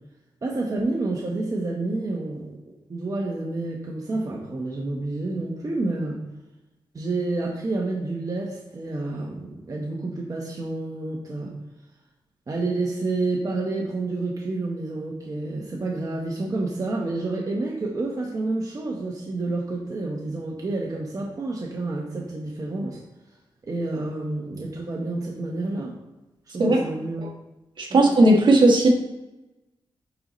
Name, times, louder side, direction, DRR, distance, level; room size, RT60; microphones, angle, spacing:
voice 1, 0.4-6.2 6.9-11.5 12.5-23.0 23.6-25.9 26.5-27.3 27.9-28.0, right 2 dB, 40° right, -2 dB, 1.2 m, -29 dB
voice 2, 27.8-28.9, right 2 dB, 65° right, -1 dB, 1.6 m, -16 dB
9.4 x 3.9 x 3.2 m, 1.0 s
cardioid pair, 75°, 9 cm